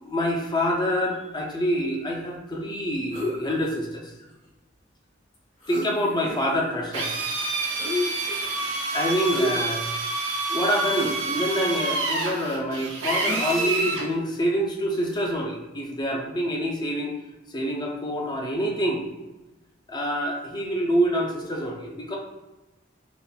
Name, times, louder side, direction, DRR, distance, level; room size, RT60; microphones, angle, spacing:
voice 1, 0.0-4.1 5.7-7.1 8.9-9.9 10.5-17.1 17.5-19.0 19.9-22.2, equal, 20° left, 0 dB, 0.4 m, -26 dB
sound 1, 3.1-3.7 5.3-5.4 5.6-6.6 7.7-8.3 9.3-9.8 10.3-10.4 10.9-11.4 13.2-14.1 15.1-15.3, left 2 dB, 85° left, 1.5 m, -31 dB
Drill, 6.9-14.1, right 3 dB, 75° right, 0.5 m, -28 dB
3.8 x 2.1 x 2.2 m, 1.1 s
head